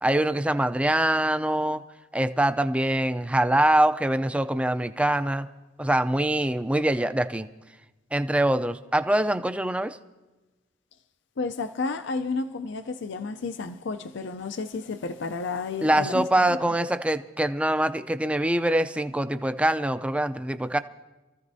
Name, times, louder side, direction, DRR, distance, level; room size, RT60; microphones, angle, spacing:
voice 1, 0.0-1.8 2.1-5.5 5.8-7.5 8.1-10.0 15.8-20.8, right 1 dB, 5° right, 0.4 m, -24 dB
voice 2, 11.4-16.6, left 4 dB, 65° left, 0.5 m, -31 dB
27.5 x 14.5 x 2.7 m
head